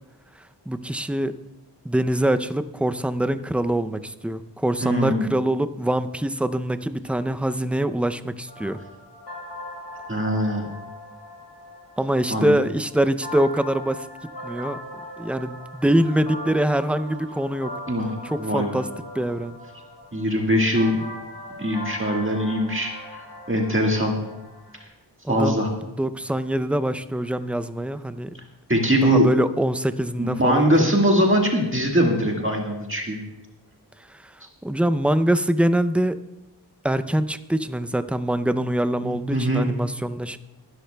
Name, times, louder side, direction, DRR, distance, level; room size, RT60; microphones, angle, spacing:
voice 1, 0.7-1.3 1.8-8.8 12.0-14.1 14.4-14.8 15.2-17.7 18.2-18.9 19.1-19.6 25.2-25.7 26.0-28.3 29.0-30.9 34.1-34.3 34.6-36.2 36.8-40.4, right 1 dB, 5° right, 11 dB, 0.5 m, -24 dB
voice 2, 4.8-5.3 10.1-10.7 12.3-12.5 17.9-18.1 18.4-18.8 20.1-21.0 21.6-23.2 23.5-24.1 25.3-25.7 28.7-29.3 30.2-33.2 39.0-39.7, equal, 30° right, 0 dB, 1.7 m, -22 dB
sound 1, 8.5-24.8, left 1 dB, 85° left, 3.3 m, -39 dB
20.5 x 11.5 x 2.3 m, 0.95 s
wide cardioid pair, 50°, 41 cm